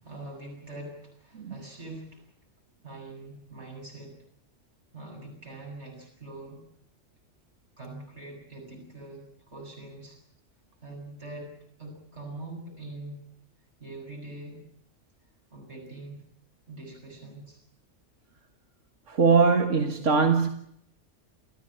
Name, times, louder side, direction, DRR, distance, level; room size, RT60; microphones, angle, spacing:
voice 1, 0.0-2.2 2.8-4.1 4.9-6.6 7.8-10.2 10.8-11.5 11.8-13.2 13.8-14.6 15.5-16.2 16.7-17.6, right 2 dB, 65° right, 8.3 m, -43 dB
voice 2, 19.1-20.5, right 5 dB, 90° right, 2.0 m, -21 dB
30.0 x 14.5 x 8.8 m
omnidirectional pair, 1.2 m